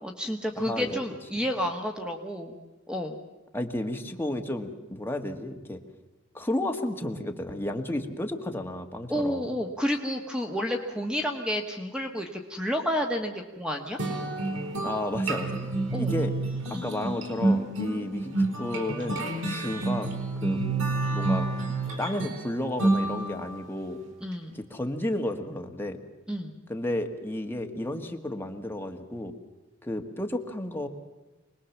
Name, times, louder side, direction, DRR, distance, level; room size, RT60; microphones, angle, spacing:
voice 1, 0.0-2.6 2.9-3.1 9.1-14.0 15.9-16.2 16.7-16.9 24.2-24.5 26.3-26.6, equal, 5° right, 3 dB, 1.4 m, -30 dB
voice 2, 0.6-1.0 3.5-5.8 6.3-9.5 14.8-15.6 16.0-16.3 16.7-20.1 20.4-20.6 21.1-21.5 22.0-24.0 24.5-26.0 26.7-29.3 29.8-30.9, left 1 dB, 10° left, 4 dB, 1.6 m, -32 dB
sound 1, 14.0-23.6, right 2 dB, 85° right, 4.3 m, -29 dB
25.0 x 20.0 x 7.2 m, 1.2 s
head